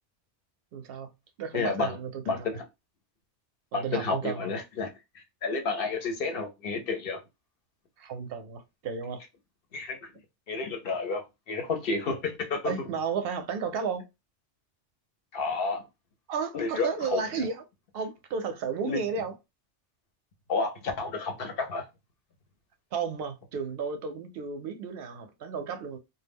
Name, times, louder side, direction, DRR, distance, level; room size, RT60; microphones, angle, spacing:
voice 1, 0.7-1.1 1.4-2.5 3.7-4.5 8.0-9.2 12.6-14.1 16.3-17.6 17.9-19.3 22.9-26.0, right 6 dB, 65° right, 0.7 m, -33 dB
voice 2, 1.5-2.0 2.3-2.6 3.7-4.9 5.1-7.2 9.7-10.0 10.5-12.7 15.3-15.8 16.5-17.5 18.8-19.0 20.5-21.8, left 4 dB, 60° left, 0.8 m, -31 dB
2.2 x 2.1 x 3.4 m
omnidirectional pair, 1.2 m